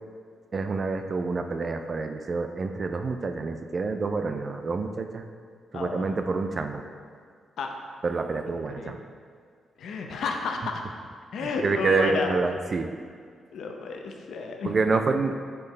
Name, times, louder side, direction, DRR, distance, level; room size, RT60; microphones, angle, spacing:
voice 1, 0.5-5.2 5.7-6.8 8.0-9.0 11.4-12.9 14.6-15.4, right 4 dB, 35° right, 6 dB, 0.4 m, -27 dB
voice 2, 5.7-6.1 7.6-7.7 8.8-9.0 9.8-10.8 11.3-12.3 13.5-14.8, left 4 dB, 70° left, 3 dB, 0.7 m, -31 dB
8.3 x 4.6 x 3.3 m, 2.1 s
wide cardioid pair, 150°, 0 cm